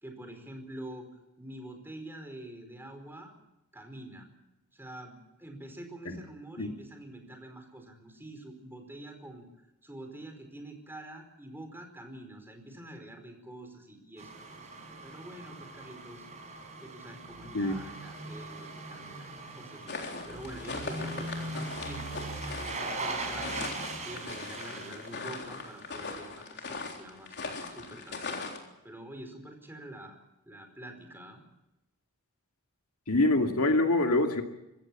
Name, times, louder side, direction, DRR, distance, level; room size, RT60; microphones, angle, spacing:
voice 1, 0.0-1.1 1.4-3.3 3.7-4.3 4.7-9.5 9.8-16.3 16.8-23.5 23.8-28.5 28.8-30.2 30.4-31.4, right 1 dB, 10° right, 5 dB, 4.8 m, -46 dB
sound 1, 14.2-26.1 26.4-26.5, right 2 dB, 30° right, 5.5 m, -40 dB
sound 2, 19.9-28.6, left 4 dB, 50° left, 3.8 m, -40 dB
voice 2, 33.1-34.4, left 2 dB, 70° left, 4 dB, 2.4 m, -25 dB
25.5 x 15.0 x 8.8 m, 0.92 s
head